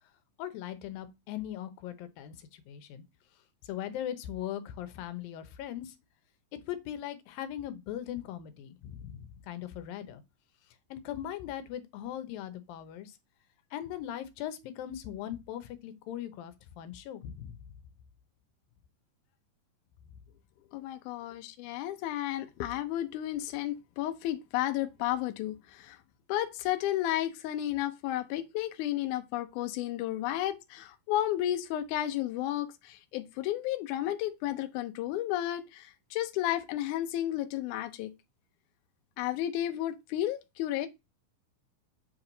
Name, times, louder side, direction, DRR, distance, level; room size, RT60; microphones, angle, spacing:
voice 1, 0.4-3.0 3.6-6.0 6.7-10.2 10.9-13.2 13.7-17.6, left 11 dB, 90° left, 2.7 m, -39 dB
voice 2, 20.7-26.0 26.3-38.1 39.2-40.9, left 13 dB, 75° left, 2.1 m, -32 dB
8.0 x 4.7 x 3.9 m
omnidirectional pair, 3.9 m